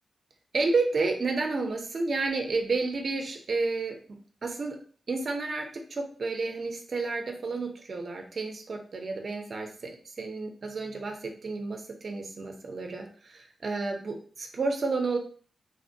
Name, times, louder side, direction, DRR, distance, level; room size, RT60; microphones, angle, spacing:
voice 1, 0.5-4.0 4.4-4.8 5.1-9.9 10.2-15.2, right 3 dB, 55° right, 3 dB, 0.5 m, -31 dB
3.4 x 2.1 x 2.6 m, 0.43 s
wide cardioid pair, 120°, 0 cm